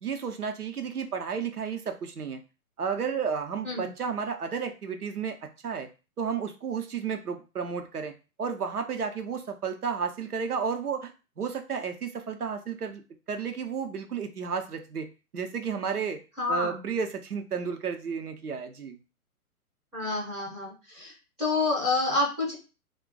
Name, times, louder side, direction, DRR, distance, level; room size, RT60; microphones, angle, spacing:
voice 1, 0.0-2.4 2.8-5.9 6.2-8.1 8.4-11.1 11.4-13.0 13.3-16.2 16.5-19.0, right 6 dB, 80° right, 5 dB, 0.7 m, -32 dB
voice 2, 16.4-16.8 19.9-21.1 21.4-22.5, left 3 dB, 10° right, -8 dB, 0.5 m, -28 dB
2.4 x 2.2 x 3.8 m, 0.31 s
figure-of-eight pair, 120°, 44 cm